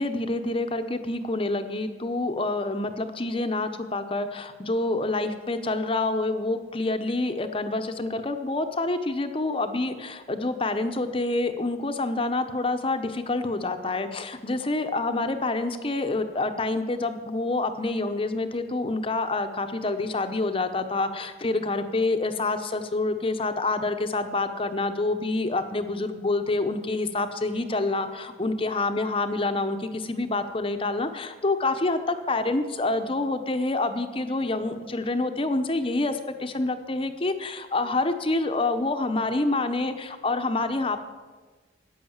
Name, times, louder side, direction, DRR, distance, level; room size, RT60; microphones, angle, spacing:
voice 1, 0.0-41.0, left 2 dB, 30° left, 8 dB, 0.8 m, -27 dB
14.5 x 9.4 x 7.3 m, 1.4 s
head